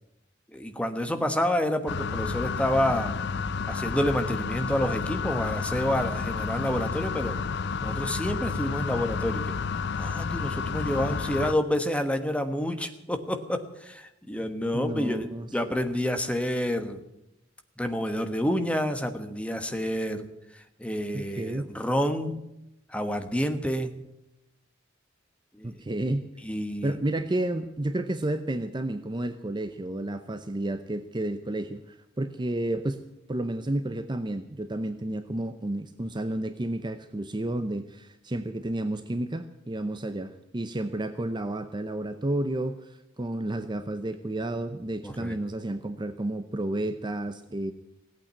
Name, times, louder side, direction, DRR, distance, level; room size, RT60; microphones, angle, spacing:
voice 1, 0.5-3.1 3.7-7.4 7.8-9.5 9.9-17.0 17.8-20.3 20.5-22.4 22.9-24.0 25.5-25.8 26.4-27.0 45.0-45.4, equal, 5° left, 7 dB, 1.2 m, -29 dB
sound 1, 1.9-11.5, left 5 dB, 60° left, 0.6 m, -31 dB
voice 2, 14.7-15.5 21.1-21.7 25.6-26.3 26.8-47.7, right 1 dB, 25° right, 9 dB, 0.7 m, -31 dB
17.0 x 8.8 x 9.3 m, 0.87 s
head